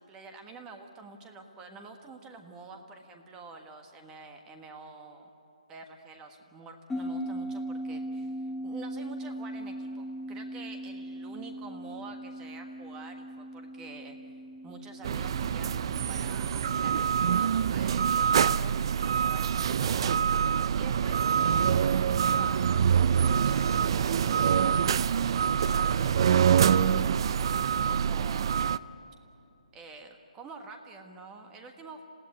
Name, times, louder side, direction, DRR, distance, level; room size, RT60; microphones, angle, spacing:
voice 1, 0.0-5.3 5.7-14.3 14.6-20.4 20.7-22.8 23.4-28.8 29.7-32.0, right 3 dB, 15° right, 5 dB, 1.5 m, -48 dB
sound 1, 6.9-19.7, equal, 5° left, 0.8 m, -40 dB
sound 2, 15.0-28.8, right 7 dB, 40° right, 0.5 m, -25 dB
27.0 x 16.5 x 9.8 m, 2.8 s
hypercardioid pair, 160°, 4 cm